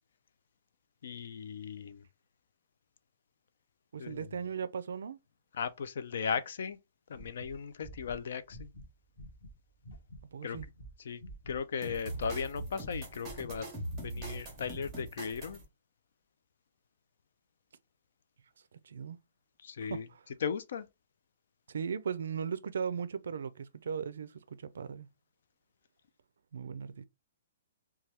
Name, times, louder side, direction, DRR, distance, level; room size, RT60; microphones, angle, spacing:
voice 1, 1.0-2.0 4.0-4.3 5.5-6.8 7.1-8.7 10.4-10.6 11.0-11.2 11.5-13.7 14.0-15.6 19.6-20.1 20.4-20.9, left 6 dB, 55° left, 0.3 m, -37 dB
voice 2, 3.9-5.2 10.3-10.7 18.8-19.2 19.8-20.2 21.7-25.1 26.5-27.0, right 6 dB, 80° right, 0.4 m, -38 dB
sound 1, 7.1-9.5 9.8-10.2 10.5-11.6 11.8-12.9 13.2-15.0, right 1 dB, 20° left, 1.0 m, -49 dB
sound 2, 11.8-15.6, right 2 dB, 10° right, 0.8 m, -41 dB
2.8 x 2.2 x 3.2 m
hypercardioid pair, 180°, 0 cm